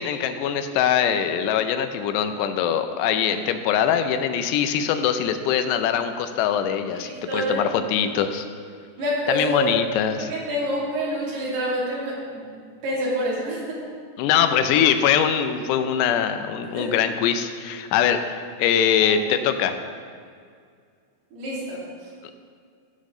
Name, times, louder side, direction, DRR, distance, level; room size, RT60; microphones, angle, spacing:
voice 1, 0.0-8.5 9.3-10.3 14.2-19.8, left 8 dB, 85° left, 8 dB, 2.8 m, -22 dB
voice 2, 7.0-7.8 9.0-9.6 10.2-12.5 12.8-13.8 16.7-16.9 19.0-19.1 21.3-21.8, equal, 70° right, -6 dB, 4.6 m, -27 dB
16.5 x 7.4 x 3.8 m, 2.2 s
omnidirectional pair, 4.9 m